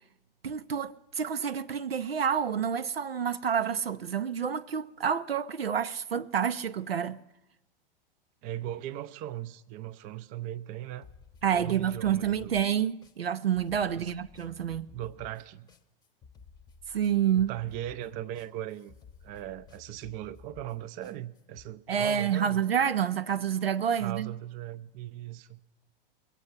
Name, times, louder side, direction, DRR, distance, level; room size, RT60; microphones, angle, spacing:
voice 1, 0.4-7.2 11.4-14.9 16.9-17.5 21.9-24.3, right 8 dB, 80° right, 0.6 m, -28 dB
voice 2, 8.4-11.1 11.5-12.6 14.0-14.1 14.9-15.7 17.3-18.9 19.2-22.6 24.0-25.6, right 12 dB, 30° right, 0.5 m, -38 dB
sound 1, 11.0-21.7, left 5 dB, 15° left, 0.9 m, -54 dB
22.0 x 8.3 x 5.7 m
figure-of-eight pair, 100°, 29 cm